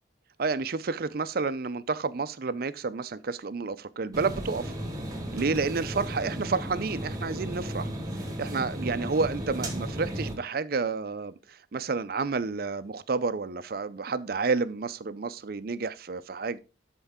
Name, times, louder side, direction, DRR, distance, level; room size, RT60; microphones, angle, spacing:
voice 1, 0.4-4.7 5.3-7.9 8.4-16.6, right 4 dB, 55° right, 0.5 m, -30 dB
sound 1, 4.1-10.3, right 1 dB, 20° right, 1.6 m, -35 dB
12.5 x 4.5 x 3.6 m
head